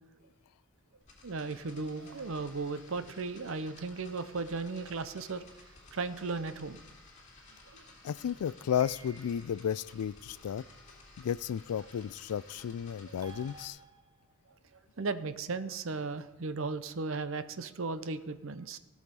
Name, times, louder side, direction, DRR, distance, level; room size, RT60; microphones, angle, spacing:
sound 1, 1.0-13.7, left 2 dB, 30° left, 2.4 m, -55 dB
voice 1, 1.2-5.4 5.9-6.8 7.7-7.8 13.1-13.2 15.0-18.8, right 4 dB, 60° right, 13 dB, 0.6 m, -36 dB
voice 2, 8.0-10.6 11.2-13.8, left 8 dB, 85° left, 20 dB, 0.3 m, -33 dB
sound 2, 8.8-9.7 13.2-14.4, right 4 dB, 15° right, 0.5 m, -53 dB
17.0 x 6.4 x 5.3 m, 1.0 s
head